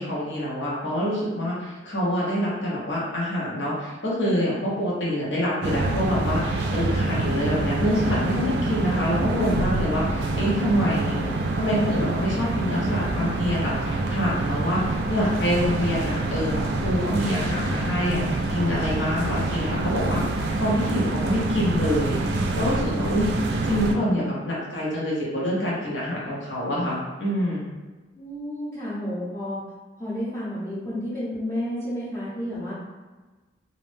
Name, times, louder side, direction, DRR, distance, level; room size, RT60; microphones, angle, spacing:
voice 1, 0.0-11.2 11.6-22.2 22.5-23.3 23.6-27.6, equal, 85° left, -6 dB, 0.9 m, -26 dB
sound 1, 5.6-24.0, right 2 dB, 60° right, 0.3 m, -26 dB
voice 2, 28.1-29.6 30.0-32.7, equal, 15° left, -12 dB, 0.6 m, -31 dB
2.5 x 2.0 x 3.2 m, 1.3 s
head